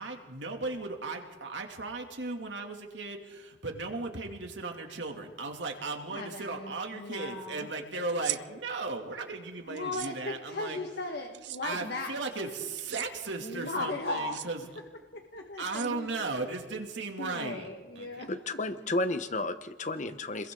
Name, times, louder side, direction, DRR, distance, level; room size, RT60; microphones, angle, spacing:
voice 1, 0.0-10.8 11.6-14.6 15.6-17.7 17.9-18.2, right 3 dB, 85° right, 2 dB, 2.8 m, -36 dB
voice 2, 6.1-7.7 9.7-12.2 13.4-14.4 15.1-16.1 17.2-18.3, left 2 dB, 60° left, 2 dB, 1.9 m, -37 dB
sound 1, 8.1-8.4 9.8-10.1 11.3-11.6 12.8-13.1 14.2-14.5 15.7-16.3, right 15 dB, 70° right, 0.6 m, -37 dB
voice 3, 18.3-20.5, left 2 dB, 40° left, 10 dB, 1.2 m, -32 dB
30.0 x 22.0 x 4.0 m, 1.3 s
head